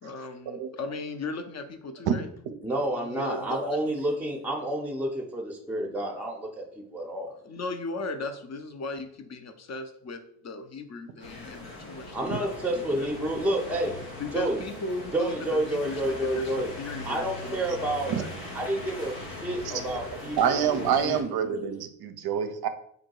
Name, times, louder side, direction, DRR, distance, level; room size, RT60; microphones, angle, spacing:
voice 1, 0.0-2.3 3.0-3.8 7.3-13.1 14.2-17.6 17.9-18.3, left 3 dB, 35° left, 8 dB, 0.7 m, -37 dB
voice 2, 2.6-6.7 6.9-7.3 12.1-14.0 14.3-14.6 15.1-16.7 17.1-18.1 18.5-21.3, right 1 dB, 5° right, 0 dB, 0.7 m, -29 dB
sound 1, 11.2-21.2, left 2 dB, 85° left, 1.2 m, -40 dB
voice 3, 20.4-22.7, right 8 dB, 50° right, 9 dB, 0.6 m, -26 dB
3.9 x 2.2 x 4.5 m, 0.70 s
hypercardioid pair, 50°, 49 cm